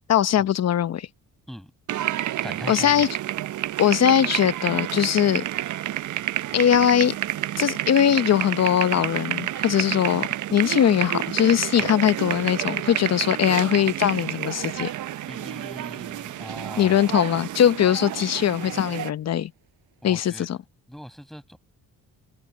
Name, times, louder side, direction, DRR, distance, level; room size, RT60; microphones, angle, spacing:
voice 1, 0.1-1.1 2.7-3.2 3.8-5.4 6.5-7.1 7.6-14.9 16.8-19.5 20.0-20.6, left 10 dB, 50° left, 0.8 m, -21 dB
sound 1, 1.9-19.1, right 13 dB, 60° right, 0.7 m, -29 dB
voice 2, 2.4-3.1 11.8-11.9 15.3-17.1 20.0-20.5 20.9-21.6, equal, ahead, 6.3 m, -40 dB
sound 2, 13.9-20.3, right 14 dB, 90° right, 7.1 m, -51 dB
cardioid pair, 90°, 34 cm